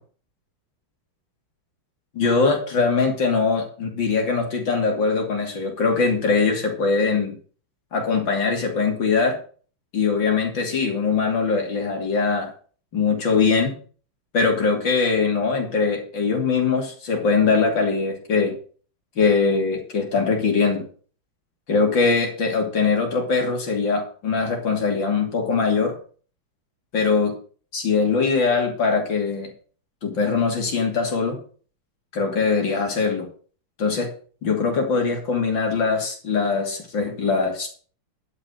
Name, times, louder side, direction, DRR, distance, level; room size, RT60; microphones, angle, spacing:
voice 1, 2.1-7.3 7.9-9.4 9.9-12.5 12.9-13.7 14.3-18.5 19.2-20.8 21.7-26.0 26.9-27.3 27.7-29.5 30.0-31.4 32.1-33.3 33.8-34.1 34.4-37.7, left 4 dB, 60° left, 2 dB, 3.4 m, -22 dB
11.5 x 5.8 x 7.8 m, 0.42 s
omnidirectional pair, 2.3 m